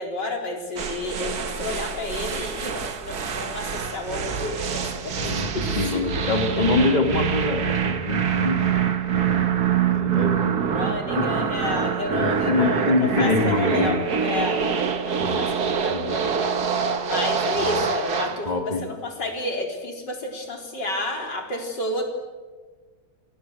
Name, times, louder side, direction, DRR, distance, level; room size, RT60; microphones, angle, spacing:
voice 1, 0.0-6.0 6.6-6.7 10.6-14.6 15.0-16.6 17.0-22.0, left 2 dB, 80° left, 2 dB, 4.6 m, -31 dB
sound 1, 0.8-18.4, right 7 dB, 60° right, 2.0 m, -25 dB
voice 2, 5.2-8.8 9.1-9.5 9.9-10.6 11.1-11.3 12.1-14.1 15.2-15.5 15.9-16.2 18.5-18.9, left 3 dB, 25° left, 4 dB, 2.4 m, -25 dB
28.5 x 24.0 x 7.8 m, 1.4 s
omnidirectional pair, 1.9 m